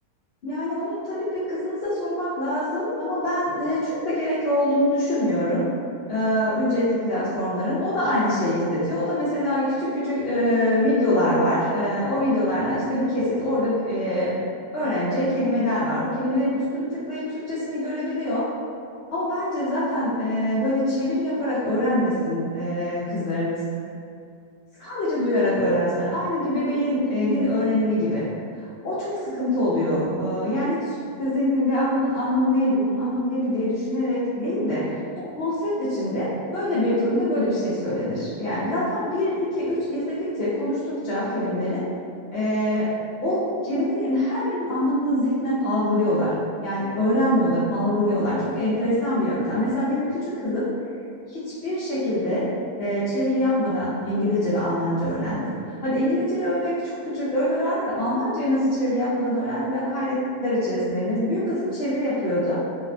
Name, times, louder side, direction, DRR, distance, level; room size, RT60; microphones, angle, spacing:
voice 1, 0.4-5.7 6.1-14.3 14.7-18.4 19.1-23.6 24.8-28.2 28.8-34.8 35.3-41.8 42.3-42.9 43.2-46.3 46.6-50.7 51.3-52.4 52.8-62.6, left 1 dB, 75° left, -11 dB, 0.5 m, -24 dB
2.6 x 2.0 x 2.5 m, 2.4 s
omnidirectional pair, 1.6 m